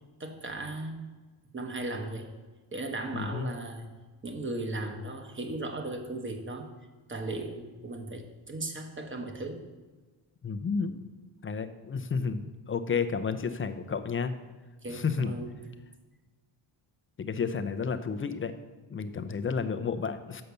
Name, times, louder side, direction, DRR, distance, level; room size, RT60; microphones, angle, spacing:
voice 1, 0.2-1.1 1.5-2.3 2.7-3.9 4.2-6.7 7.1-9.6 10.9-11.0 14.8-15.5, right 2 dB, 25° right, 4 dB, 1.2 m, -36 dB
voice 2, 3.1-3.5 10.4-11.0 11.4-14.3 14.9-15.3 17.2-18.5 18.9-20.4, left 5 dB, 25° left, 9 dB, 0.6 m, -31 dB
6.6 x 5.8 x 6.8 m, 1.3 s
cardioid pair, 105°, 46 cm